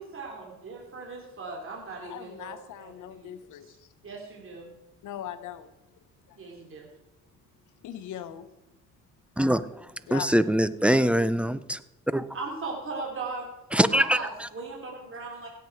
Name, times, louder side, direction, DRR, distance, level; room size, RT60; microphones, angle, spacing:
voice 1, 0.0-3.3 3.6-3.7 4.0-4.7 6.4-6.9 12.3-13.5 13.9-15.5, right 3 dB, 45° right, -1 dB, 3.0 m, -38 dB
voice 2, 2.1-3.9 5.0-5.7 6.3-6.4 7.8-8.5 10.1-10.6, left 11 dB, 80° left, 12 dB, 1.0 m, -40 dB
voice 3, 10.1-11.8 12.1-12.2 13.7-14.2, equal, 5° right, 15 dB, 0.5 m, -23 dB
16.5 x 8.0 x 4.6 m, 1.0 s
cardioid pair, 90°, 30 cm